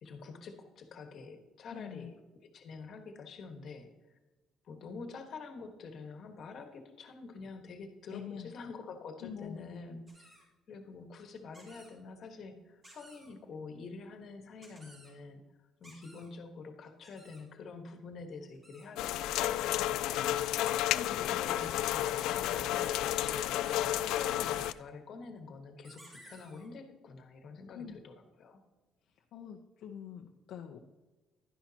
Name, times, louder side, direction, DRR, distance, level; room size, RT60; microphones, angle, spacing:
voice 1, 0.0-2.1 2.4-4.2 4.6-15.4 15.8-20.7 21.2-28.6, left 4 dB, 50° left, 6 dB, 1.4 m, -47 dB
voice 2, 1.7-2.1 8.1-8.5 9.2-9.8 20.9-21.3 27.7-28.0 29.3-30.8, left 8 dB, 65° left, 2 dB, 0.7 m, -45 dB
sound 1, 10.1-10.4 11.5-11.9 12.8-13.3 14.6-15.1 15.8-16.3 17.0-17.4 18.5-18.9 20.1-20.5 21.4-24.7 25.8-26.7, right 1 dB, 20° right, 2.9 m, -54 dB
sound 2, 19.0-24.7, left 13 dB, 80° left, 0.3 m, -31 dB
11.0 x 10.5 x 2.9 m, 1.2 s
cardioid pair, 145°, 0 cm